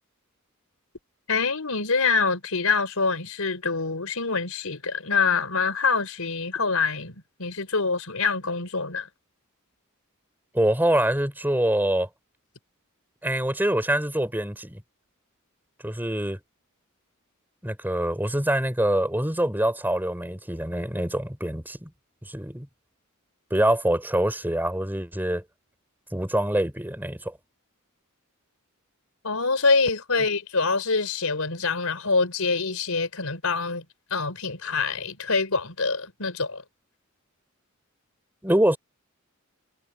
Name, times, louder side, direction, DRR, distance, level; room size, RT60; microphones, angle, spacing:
voice 1, 1.3-7.1 7.4-9.1 29.2-33.8 34.1-36.6, left 4 dB, 85° left, 4.0 m, -25 dB
voice 2, 10.5-12.1 13.2-14.8 15.8-16.4 17.6-21.9 22.2-22.7 23.5-25.4 26.1-27.3 38.4-38.8, right 1 dB, 10° right, 4.7 m, -25 dB
head